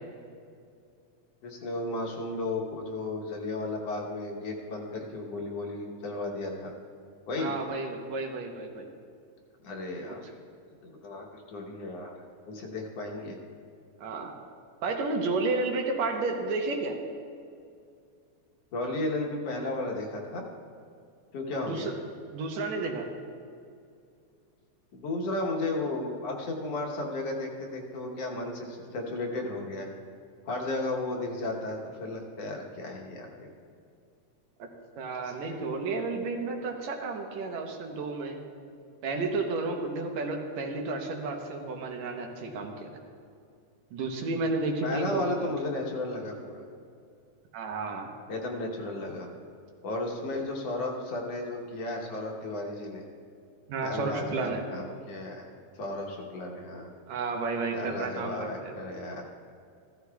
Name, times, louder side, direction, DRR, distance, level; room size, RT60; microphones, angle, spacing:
voice 1, 1.4-6.7 7.3-7.5 9.6-10.3 10.8-12.2 12.5-13.4 18.7-20.4 21.3-21.9 24.9-29.9 30.5-33.5 35.2-35.6 44.8-46.6 48.3-49.3 49.8-53.0 53.8-55.5 55.7-56.9 57.7-59.2, left 2 dB, 65° left, 0 dB, 2.1 m, -34 dB
voice 2, 7.4-8.9 10.0-10.2 14.0-14.3 14.8-17.0 21.6-21.9 22.3-23.1 34.6-34.7 35.0-38.4 39.0-42.9 43.9-45.5 47.5-48.1 53.7-54.6 57.1-58.7, right 3 dB, 75° right, 2 dB, 2.1 m, -32 dB
15.0 x 13.0 x 2.3 m, 2.3 s
omnidirectional pair, 3.3 m